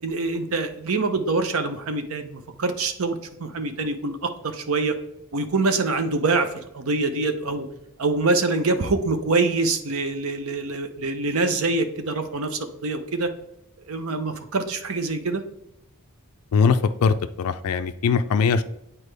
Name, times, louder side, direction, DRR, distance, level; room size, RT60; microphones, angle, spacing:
voice 1, 0.0-5.0 5.3-7.7 8.0-13.3 13.9-15.4, right 3 dB, 70° right, 8 dB, 0.7 m, -25 dB
voice 2, 16.5-18.6, left 5 dB, 80° left, 9 dB, 0.4 m, -21 dB
8.2 x 4.4 x 3.3 m, 0.85 s
head